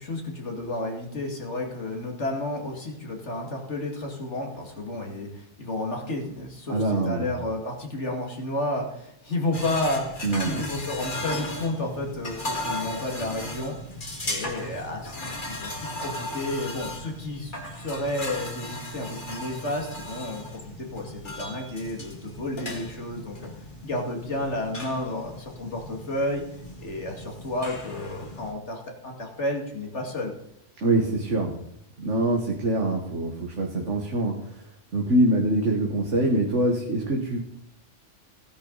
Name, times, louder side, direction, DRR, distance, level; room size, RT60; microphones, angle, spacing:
voice 1, 0.0-13.8 14.2-23.4 23.8-26.4 26.8-30.3, left 1 dB, 70° left, 1 dB, 2.7 m, -31 dB
voice 2, 6.7-7.3 10.2-10.6 30.8-31.6 32.0-34.4 34.9-37.4, right 1 dB, 75° right, 0 dB, 1.9 m, -24 dB
sound 1, 9.5-28.5, left 1 dB, 40° left, 2.2 m, -37 dB
16.5 x 10.0 x 4.1 m, 0.76 s
omnidirectional pair, 1.2 m